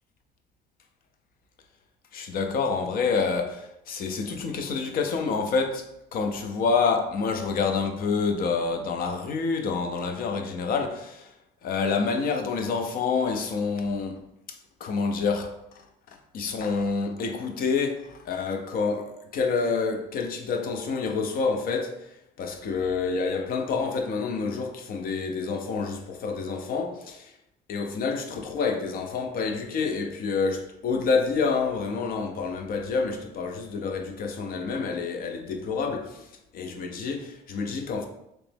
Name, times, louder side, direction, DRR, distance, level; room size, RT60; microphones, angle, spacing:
voice 1, 2.1-5.8 6.1-11.3 11.6-14.2 14.8-15.6 16.1-22.0 22.4-27.3 27.7-36.3 36.5-38.1, left 4 dB, 60° left, 0.6 m, -28 dB
3.2 x 3.0 x 3.4 m
cardioid pair, 110°, 17 cm